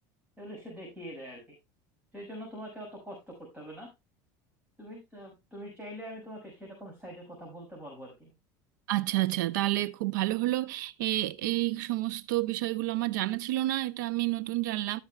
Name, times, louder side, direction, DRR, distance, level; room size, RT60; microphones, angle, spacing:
voice 1, 0.4-1.6 2.1-3.9 4.8-8.3, equal, 15° right, 6.3 m, -44 dB
voice 2, 8.9-15.0, right 17 dB, 85° right, 0.8 m, -29 dB
17.0 x 7.0 x 2.3 m
supercardioid pair, 125°, 10 cm